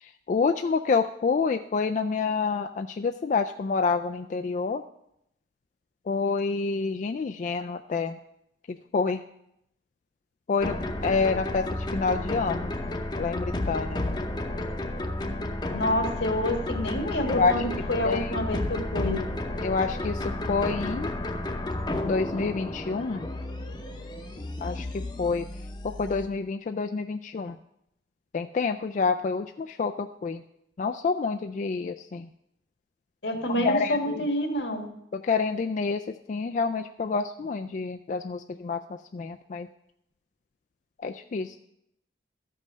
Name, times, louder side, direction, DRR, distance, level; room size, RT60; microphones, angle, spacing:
voice 1, 0.0-4.8 6.1-8.2 8.7-9.2 10.5-10.8 11.0-11.6 11.9-12.7 13.2-14.0 17.3-17.6 18.0-18.4 19.6-21.1 22.0-23.3 24.6-25.5 25.8-27.6 28.3-30.4 30.8-32.3 33.5-34.2 35.1-38.8 39.1-39.7 41.0-41.6, left 4 dB, 45° left, 6 dB, 0.3 m, -28 dB
sound 1, 10.6-26.3, left 1 dB, 25° left, 0.8 m, -32 dB
voice 2, 15.7-19.2 33.2-34.9, left 1 dB, 80° left, 4 dB, 1.7 m, -28 dB
13.0 x 5.4 x 6.2 m, 0.78 s
head